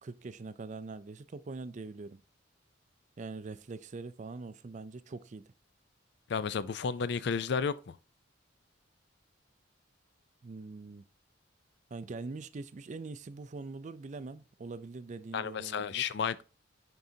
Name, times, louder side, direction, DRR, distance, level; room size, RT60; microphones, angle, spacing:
voice 1, 0.0-2.2 3.2-5.5 10.4-11.0 11.9-16.0, right 3 dB, 40° right, 0.4 m, -43 dB
voice 2, 6.3-8.0 15.3-16.4, left 6 dB, 60° left, 0.4 m, -32 dB
10.5 x 3.8 x 2.7 m
head